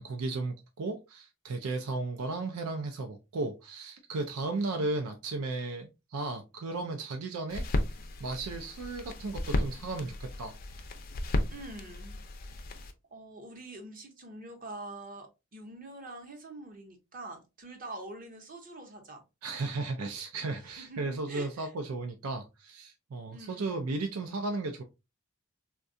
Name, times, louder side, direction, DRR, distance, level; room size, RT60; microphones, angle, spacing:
voice 1, 0.0-7.6 8.2-10.5 19.4-24.8, right 3 dB, 85° right, 0.5 m, -35 dB
sound 1, 7.5-12.9, left 1 dB, 40° left, 0.4 m, -34 dB
voice 2, 11.5-12.2 13.1-19.2 20.8-21.7 23.3-23.7, right 2 dB, 40° right, 0.7 m, -45 dB
3.5 x 2.2 x 2.5 m
head